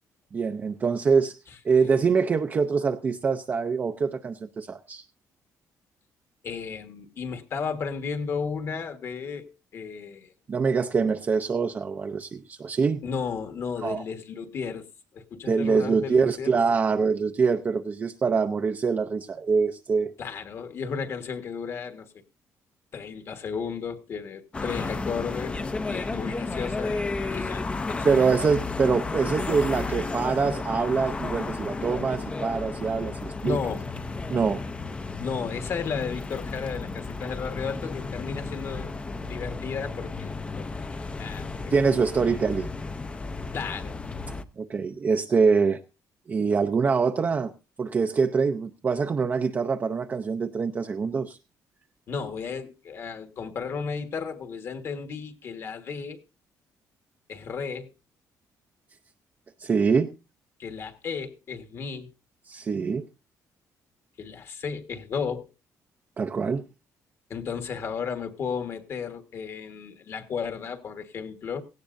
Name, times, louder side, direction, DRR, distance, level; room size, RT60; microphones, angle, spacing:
voice 1, 0.3-1.3 1.6-5.0 10.5-13.0 13.8-14.0 15.5-20.1 28.0-33.6 34.3-34.6 41.7-42.7 44.6-45.8 46.3-47.5 47.8-51.4 59.6-60.1 62.5-63.1 66.2-66.6, right 5 dB, 30° right, 0.6 m, -24 dB
voice 2, 6.4-10.3 13.0-14.9 15.1-16.5 20.2-22.1 22.9-25.6 25.9-27.0 27.3-28.5 33.4-33.9 35.2-41.7 43.5-44.0 52.1-56.2 57.3-57.9 60.6-62.1 64.2-65.5 67.3-71.6, left 6 dB, 45° left, 1.5 m, -34 dB
sound 1, 24.5-44.4, left 3 dB, 20° left, 0.7 m, -33 dB
17.0 x 16.5 x 2.6 m
cardioid pair, 165°, 6 cm